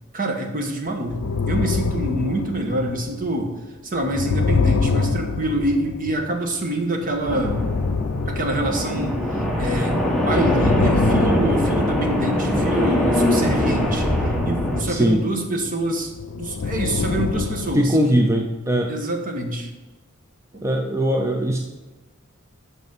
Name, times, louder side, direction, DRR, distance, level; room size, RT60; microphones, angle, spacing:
voice 1, 0.1-3.5 3.8-7.7 8.3-10.0 10.2-14.1 14.4-18.2 18.9-19.7 20.5-20.6, right 1 dB, 45° right, 3 dB, 1.3 m, -26 dB
sound 1, 0.9-3.3 4.0-6.7 7.1-9.6 9.9-12.8 13.3-17.9, left 4 dB, 85° left, 0.5 m, -26 dB
sound 2, 7.3-14.8, equal, ahead, 1.3 m, -22 dB
voice 2, 14.9-15.2 17.7-18.9 20.6-21.6, equal, 15° right, 2 dB, 0.6 m, -20 dB
8.0 x 6.0 x 5.5 m, 1.2 s
head